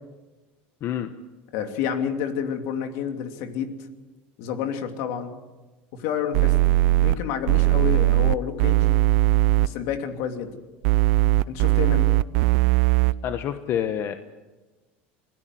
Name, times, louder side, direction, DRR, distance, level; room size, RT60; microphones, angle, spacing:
voice 1, 0.8-1.1 13.2-14.2, left 10 dB, 50° left, 8 dB, 1.2 m, -27 dB
voice 2, 1.5-3.7 4.4-5.3 5.9-6.5 7.0-8.8 9.6-10.5 11.5-12.1, left 8 dB, 70° left, 5 dB, 2.9 m, -29 dB
sound 1, 6.3-7.2 7.5-9.7 10.8-13.1, right 17 dB, 70° right, 0.6 m, -19 dB
25.0 x 17.0 x 7.8 m, 1.2 s
supercardioid pair, 105°, 6 cm